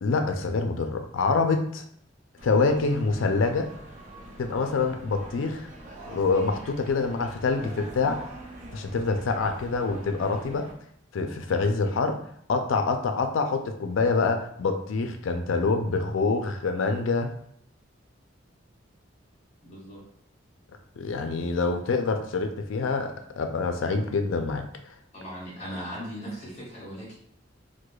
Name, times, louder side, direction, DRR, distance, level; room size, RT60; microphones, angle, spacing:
voice 1, 0.0-1.8 2.4-3.7 4.4-5.7 6.1-8.2 8.7-10.7 11.1-12.2 12.5-17.3 21.0-24.6, left 4 dB, 75° left, 5 dB, 0.4 m, -26 dB
sound 1, 2.4-10.7, right 1 dB, 40° right, 0.6 m, -44 dB
voice 2, 19.6-20.0 25.1-27.2, equal, 35° left, -7 dB, 1.4 m, -38 dB
4.7 x 2.2 x 2.3 m, 0.65 s
head